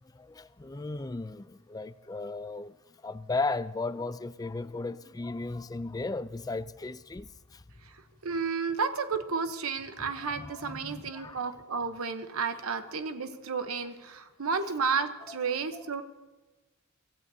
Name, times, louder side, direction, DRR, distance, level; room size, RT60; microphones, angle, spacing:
voice 1, 0.1-2.8 3.0-7.6 10.4-11.4 15.3-15.4 15.7-15.8, left 3 dB, 20° left, 0.4 m, -36 dB
voice 2, 8.2-16.0, right 5 dB, 90° right, 0.9 m, -32 dB
25.5 x 14.5 x 2.8 m
head